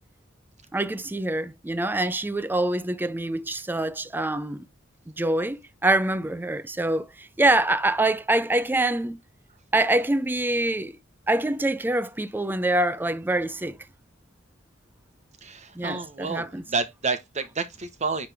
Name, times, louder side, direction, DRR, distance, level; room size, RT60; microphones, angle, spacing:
voice 1, 0.7-4.7 5.2-9.2 9.7-11.0 11.3-13.8 15.8-16.6, right 2 dB, 10° right, 0.4 m, -25 dB
voice 2, 15.4-18.3, right 4 dB, 35° right, 1.0 m, -30 dB
10.0 x 3.4 x 3.4 m
head